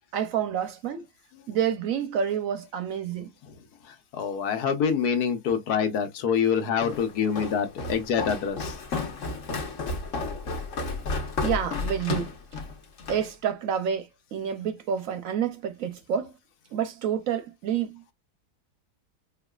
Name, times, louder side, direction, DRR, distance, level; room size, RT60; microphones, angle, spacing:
voice 1, 0.1-1.1 1.5-3.3 11.4-12.3 13.1-16.3 16.7-18.1, right 8 dB, 70° right, 0.9 m, -28 dB
voice 2, 3.8-8.8, left 7 dB, 75° left, 1.3 m, -26 dB
Walk footsteps, 6.8-13.3, left 3 dB, 55° left, 1.3 m, -32 dB
4.6 x 2.4 x 2.2 m
omnidirectional pair, 1.7 m